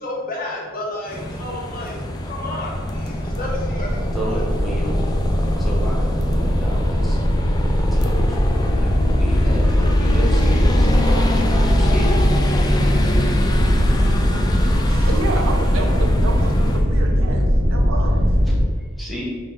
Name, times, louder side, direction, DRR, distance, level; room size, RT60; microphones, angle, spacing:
voice 1, 0.0-4.4 5.3-5.7, left 1 dB, 45° left, -3 dB, 1.0 m, -32 dB
sound 1, 1.1-16.8, left 1 dB, 20° left, 0.4 m, -24 dB
sound 2, 2.7-18.6, equal, 65° right, 1.2 m, -20 dB
voice 2, 4.1-5.0 5.6-7.2 7.9-12.2 19.0-19.2, right 1 dB, ahead, -6 dB, 1.1 m, -32 dB
voice 3, 14.9-18.3, right 2 dB, 90° right, 2 dB, 0.7 m, -29 dB
4.9 x 2.9 x 3.7 m, 1.5 s
head